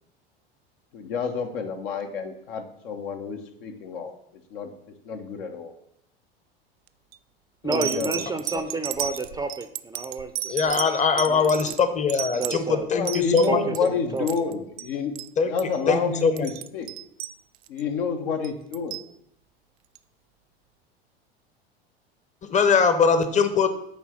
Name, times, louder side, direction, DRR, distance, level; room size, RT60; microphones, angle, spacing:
voice 1, 0.9-4.1 4.5-4.7 5.0-5.7 7.6-8.2 8.5-8.6 12.9-15.1 15.5-16.9 17.7-19.0, left 5 dB, 65° left, 5 dB, 1.2 m, -29 dB
sound 1, 6.9-7.2 7.7-13.9 14.2-14.5 14.8-14.9 15.2-15.3 15.6-15.8 16.2-17.8 18.4-19.1 20.0-20.1, right 13 dB, 80° right, 0.4 m, -34 dB
voice 2, 7.6-11.7 12.4-12.9 13.5-14.5, right 3 dB, 10° right, 8 dB, 0.6 m, -31 dB
voice 3, 10.5-13.9 15.4-16.5 22.5-23.7, left 5 dB, 25° left, 10 dB, 0.9 m, -22 dB
8.7 x 3.4 x 6.3 m, 0.74 s
hypercardioid pair, 85°, 30 cm